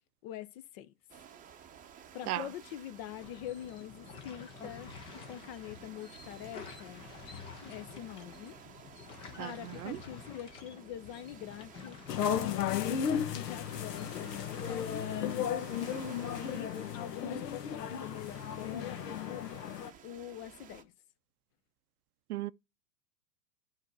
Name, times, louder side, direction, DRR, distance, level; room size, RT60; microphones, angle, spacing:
voice 1, 0.2-0.9 2.1-4.9 5.3-7.0 7.7-8.6 9.4-12.9 13.3-15.1 16.3-19.5 20.0-20.9, left 11 dB, 35° left, 0.7 m, -44 dB
sound 1, 1.1-20.8, right 8 dB, 15° right, 0.8 m, -54 dB
sound 2, 3.2-14.8, left 6 dB, 10° left, 0.4 m, -50 dB
voice 2, 9.4-10.0 22.3-22.5, right 16 dB, 65° right, 0.6 m, -36 dB
sound 3, 12.1-19.9, left 8 dB, 75° left, 1.3 m, -34 dB
9.4 x 4.1 x 4.8 m
hypercardioid pair, 130°, 49 cm